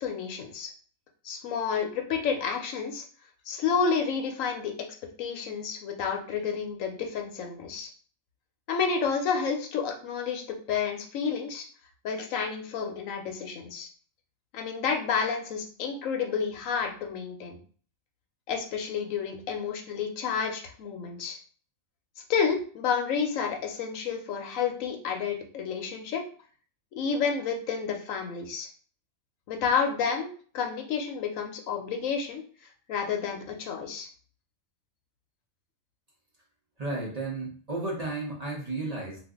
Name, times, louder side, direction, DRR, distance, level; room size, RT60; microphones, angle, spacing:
voice 1, 0.0-0.7 1.2-3.0 3.5-4.7 5.2-7.9 8.7-10.4 10.7-11.7 12.0-13.9 14.5-17.6 18.5-21.4 22.3-26.2 26.9-28.7 29.5-32.4 32.9-34.1, left 6 dB, 70° left, 3 dB, 1.0 m, -30 dB
voice 2, 36.8-39.2, right 2 dB, 40° right, -3 dB, 0.5 m, -33 dB
2.5 x 2.5 x 3.4 m, 0.44 s
omnidirectional pair, 1.5 m